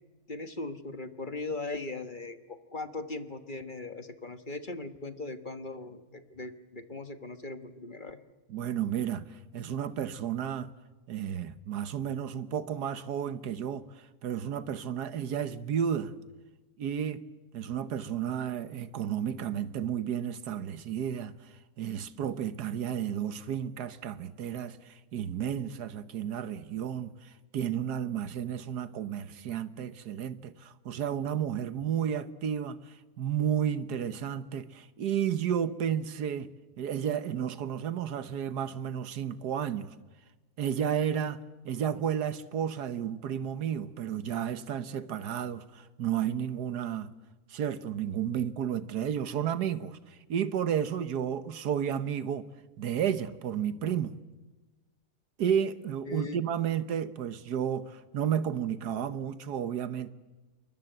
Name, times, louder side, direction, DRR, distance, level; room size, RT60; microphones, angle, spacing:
voice 1, 0.3-8.2 56.1-56.4, left 2 dB, 35° left, 1.4 m, -39 dB
voice 2, 8.5-10.7 11.1-16.1 16.8-17.2 17.5-21.3 21.8-36.5 36.8-39.9 40.6-47.1 47.5-52.5 52.8-54.2 55.4-60.1, right 9 dB, 85° right, 1.6 m, -32 dB
28.5 x 23.0 x 8.0 m
omnidirectional pair, 1.7 m